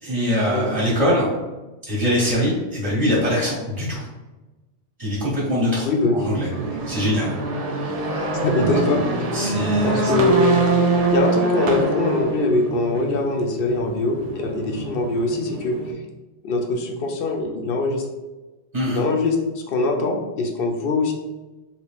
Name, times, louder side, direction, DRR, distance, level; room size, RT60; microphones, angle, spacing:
voice 1, 0.0-1.3 1.9-4.0 5.0-6.5 6.8-7.3 8.6-8.7 9.3-10.2 18.7-19.0, equal, 35° right, -6 dB, 0.9 m, -23 dB
voice 2, 5.8-6.5 8.4-9.0 9.8-10.6 11.1-15.8 16.4-18.0 18.9-19.4 19.7-21.1, left 2 dB, 60° left, 2 dB, 0.7 m, -22 dB
sound 1, 6.5-15.9, right 3 dB, 75° right, 0.3 m, -24 dB
2.9 x 2.6 x 3.3 m, 1.1 s
omnidirectional pair, 1.2 m